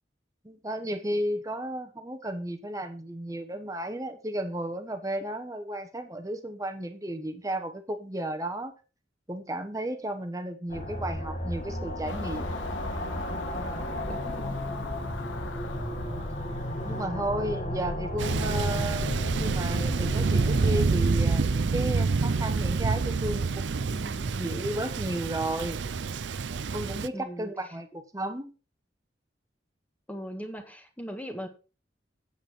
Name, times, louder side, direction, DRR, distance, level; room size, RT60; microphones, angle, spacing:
voice 1, 0.4-8.7 9.3-12.5 13.6-13.8 16.8-25.8 26.7-28.5, right 1 dB, 20° right, 7 dB, 1.2 m, -33 dB
sound 1, 10.7-20.8, left 1 dB, 40° left, 2.1 m, -33 dB
Car passing by / Engine, 12.1-17.1, left 3 dB, 90° left, 1.2 m, -41 dB
voice 2, 14.0-14.9 27.1-27.5 30.1-31.5, equal, 10° left, 5 dB, 1.7 m, -39 dB
Thunder, 18.2-27.1, right 4 dB, 70° right, 0.5 m, -27 dB
9.0 x 8.3 x 4.5 m, 0.32 s
head